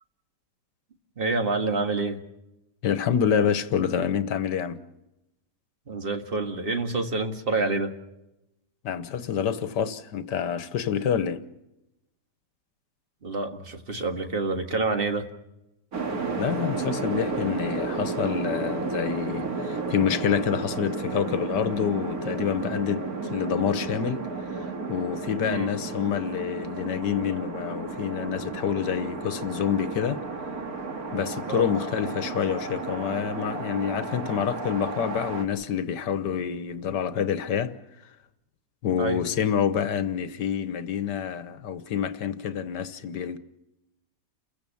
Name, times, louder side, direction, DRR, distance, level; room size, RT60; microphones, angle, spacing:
voice 1, 1.2-2.2 5.9-7.9 13.2-15.3 25.5-25.7 31.5-31.7 39.0-39.2, right 3 dB, 35° right, 1.8 m, -27 dB
voice 2, 2.8-4.8 8.8-11.4 16.4-24.2 24.9-30.2 31.1-37.8 38.8-43.4, left 8 dB, 75° left, 1.7 m, -27 dB
sound 1, 15.9-35.4, right 3 dB, 55° right, 2.4 m, -33 dB
29.5 x 15.5 x 7.1 m
omnidirectional pair, 1.9 m